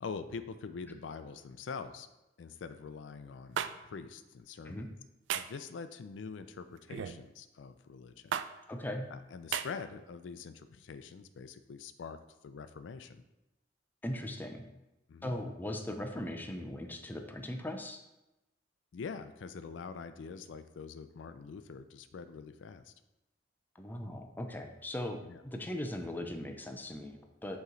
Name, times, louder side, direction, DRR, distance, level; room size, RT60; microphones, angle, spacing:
voice 1, 0.0-2.1 2.4-4.9 5.3-8.4 9.1-13.2 15.1-15.3 18.9-22.9 25.3-25.4, left 5 dB, 85° left, 11 dB, 0.4 m, -44 dB
sound 1, 3.6-3.7 5.3-5.6 6.9-7.2 8.3-8.5 9.5-9.7, right 9 dB, 80° right, 0.3 m, -33 dB
voice 2, 8.7-9.1 14.0-14.7 15.2-18.0 23.8-27.6, left 1 dB, 10° left, 4 dB, 0.5 m, -39 dB
8.1 x 3.1 x 3.8 m, 0.96 s
head